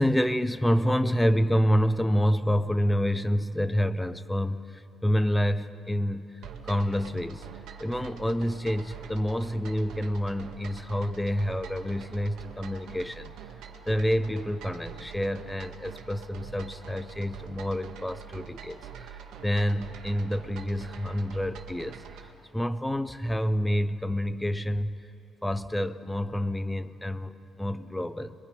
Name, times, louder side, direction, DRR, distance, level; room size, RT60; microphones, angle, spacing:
voice 1, 0.0-6.3 6.6-7.5 7.8-13.3 13.9-22.3 22.5-25.0 25.4-28.3, equal, 10° left, 13 dB, 0.9 m, -28 dB
sound 1, 6.4-22.3, right 7 dB, 90° right, 1.9 m, -44 dB
27.5 x 22.5 x 5.4 m, 2.8 s
cardioid pair, 90°, 0 cm